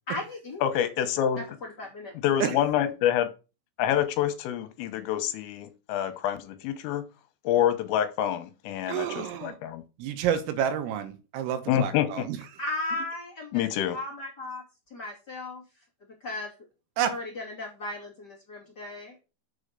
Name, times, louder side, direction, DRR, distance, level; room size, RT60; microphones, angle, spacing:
voice 1, 0.1-0.8 1.4-2.1 12.6-14.6 14.9-15.6 16.2-16.5 17.0-19.2, left 2 dB, 30° left, -2 dB, 2.0 m, -36 dB
voice 2, 0.6-1.4 2.2-3.3 3.8-7.0 7.5-9.8 11.7-12.1 13.5-14.0, left 10 dB, 80° left, 10 dB, 3.8 m, -27 dB
voice 3, 8.9-9.6 10.0-12.6 17.0-17.2, right 9 dB, 85° right, 9 dB, 3.9 m, -29 dB
7.3 x 6.3 x 6.8 m, 0.31 s
omnidirectional pair, 5.9 m